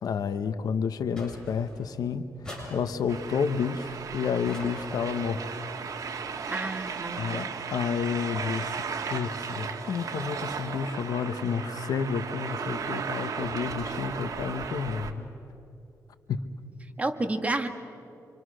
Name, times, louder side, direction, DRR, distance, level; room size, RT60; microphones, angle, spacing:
voice 1, 0.0-5.4 7.2-15.3 16.3-16.4, left 6 dB, 75° left, 11 dB, 1.1 m, -30 dB
sound 1, 1.2-1.9 2.4-3.3 4.4-5.3, equal, 10° left, 7.4 m, -44 dB
sound 2, 3.1-15.1, right 6 dB, 60° right, 1.7 m, -35 dB
voice 2, 6.5-7.3 17.0-17.7, right 2 dB, 20° right, 6 dB, 1.7 m, -30 dB
28.0 x 26.0 x 6.4 m, 2.7 s
cardioid pair, 100°, 6 cm